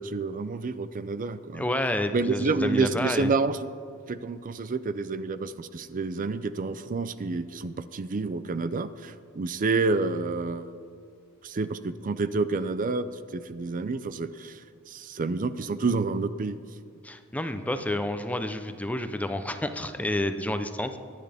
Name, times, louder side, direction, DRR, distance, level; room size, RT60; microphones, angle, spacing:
voice 1, 0.0-1.6 2.1-3.7 4.1-10.7 11.4-16.6, right 3 dB, 40° right, 13 dB, 0.5 m, -29 dB
voice 2, 1.5-3.3 17.0-21.0, left 1 dB, 5° left, 8 dB, 0.7 m, -29 dB
23.5 x 9.9 x 3.5 m, 2.3 s
head